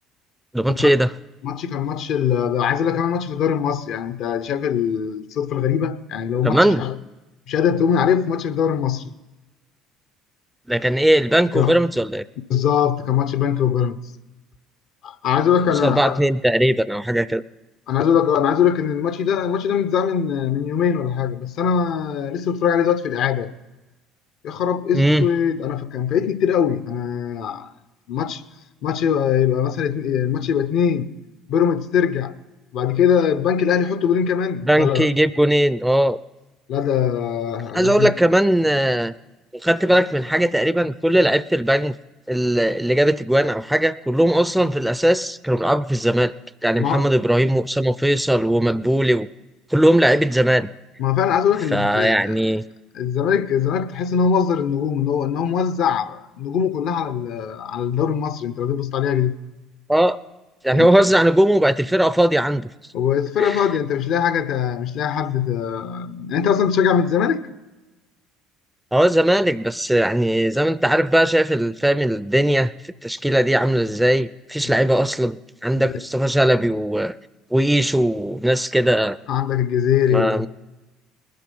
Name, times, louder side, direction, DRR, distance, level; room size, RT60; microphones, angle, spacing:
voice 1, 0.5-1.1 6.4-6.8 10.7-12.2 15.8-17.4 24.9-25.3 34.7-36.2 37.7-39.1 39.6-41.9 42.3-46.3 46.6-49.3 49.7-50.7 51.7-52.6 59.9-60.2 60.6-62.7 63.4-63.6 68.9-72.7 73.0-77.1 77.5-79.2 80.1-80.5, right 1 dB, 5° right, 0.5 m, -19 dB
voice 2, 1.4-7.0 7.5-9.1 11.5-11.8 12.5-14.0 15.0-16.2 17.9-23.5 24.4-27.7 28.1-28.4 28.8-31.1 31.5-32.3 32.7-35.1 36.7-38.1 46.8-47.1 51.0-52.4 52.9-59.4 60.7-60.9 62.9-67.4 74.6-74.7 75.8-75.9 79.3-80.5, left 8 dB, 65° left, 0.7 m, -21 dB
20.5 x 7.7 x 5.4 m
hypercardioid pair, 65°, 0 cm